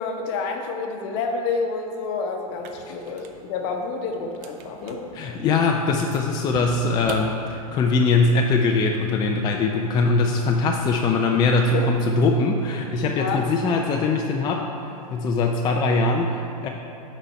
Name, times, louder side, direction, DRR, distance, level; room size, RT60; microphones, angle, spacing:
voice 1, 0.0-5.4 11.7-11.8 13.1-13.5, left 4 dB, 50° left, 3 dB, 0.9 m, -29 dB
sound 1, 2.5-8.0, right 5 dB, 40° right, 0.6 m, -41 dB
voice 2, 5.1-16.7, left 3 dB, 20° left, 1 dB, 0.4 m, -22 dB
8.8 x 4.1 x 4.2 m, 2.7 s
hypercardioid pair, 120°, 19 cm